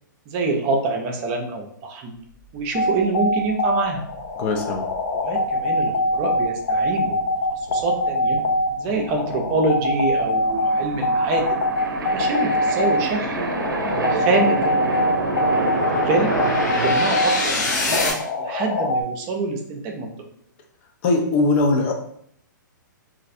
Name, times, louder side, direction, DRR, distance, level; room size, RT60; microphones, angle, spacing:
voice 1, 0.3-2.1 2.5-4.0 5.1-7.2 7.7-8.4 8.8-11.6 12.0-13.5 13.8-15.1 15.9-16.3 16.6-20.1, right 3 dB, 30° right, 2 dB, 0.5 m, -26 dB
sound 1, 2.7-19.0, left 1 dB, 85° left, 0.5 m, -23 dB
sound 2, 3.4-3.5 4.0-18.1, left 2 dB, 60° left, 0.8 m, -30 dB
voice 2, 4.4-4.8 21.0-21.9, left 3 dB, 40° left, 2 dB, 0.5 m, -20 dB
sound 3, 10.5-16.9, right 3 dB, 90° right, 0.5 m, -27 dB
3.1 x 2.4 x 2.6 m, 0.67 s
hypercardioid pair, 125°, 11 cm